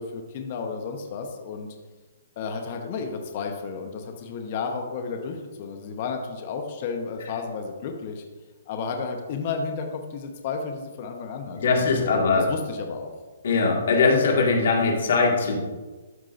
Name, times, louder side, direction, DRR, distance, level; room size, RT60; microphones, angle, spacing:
voice 1, 0.0-1.7 2.4-8.2 8.7-13.1, left 5 dB, 35° left, 4 dB, 0.9 m, -32 dB
voice 2, 11.6-12.5 13.4-15.6, left 4 dB, 60° left, 0 dB, 1.8 m, -21 dB
12.5 x 5.5 x 2.6 m, 1.3 s
hypercardioid pair, 170°, 0 cm